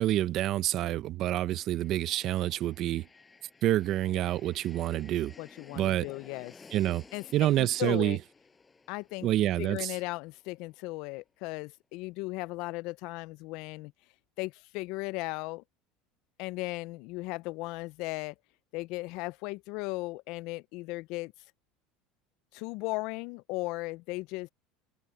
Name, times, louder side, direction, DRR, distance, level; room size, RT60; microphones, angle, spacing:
voice 1, 0.0-3.1 3.6-5.3 5.7-6.1 6.7-7.0 7.3-8.2 9.2-9.9, right 14 dB, 50° right, 0.7 m, -27 dB
sound 1, 1.4-11.3, left 4 dB, 15° left, 6.8 m, -56 dB
voice 2, 5.4-6.6 7.1-8.2 8.9-9.3 9.6-13.9 14.4-15.6 16.4-18.3 18.7-21.3 22.5-24.5, left 22 dB, 65° left, 0.4 m, -36 dB
supercardioid pair, 125°, 0 cm